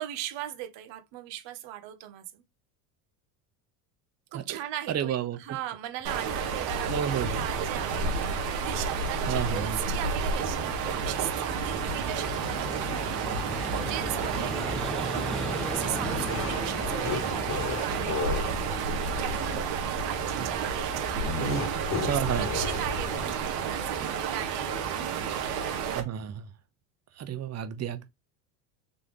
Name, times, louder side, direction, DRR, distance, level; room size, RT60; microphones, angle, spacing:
voice 1, 0.0-2.4 4.3-7.0 7.3-18.6 19.1-25.0, right 13 dB, 60° right, 1.1 m, -39 dB
voice 2, 4.9-5.4 6.9-7.4 9.3-9.8 22.1-22.5 25.9-26.5 27.2-28.1, right 9 dB, 30° right, 0.8 m, -30 dB
sound 1, 6.0-26.0, right 5 dB, 85° right, 1.5 m, -31 dB
Vehicle, 9.2-23.3, equal, ahead, 0.5 m, -40 dB
sound 2, 16.0-18.6 21.2-23.5, left 3 dB, 30° left, 1.3 m, -34 dB
4.1 x 3.3 x 3.2 m
supercardioid pair, 90°, 50 cm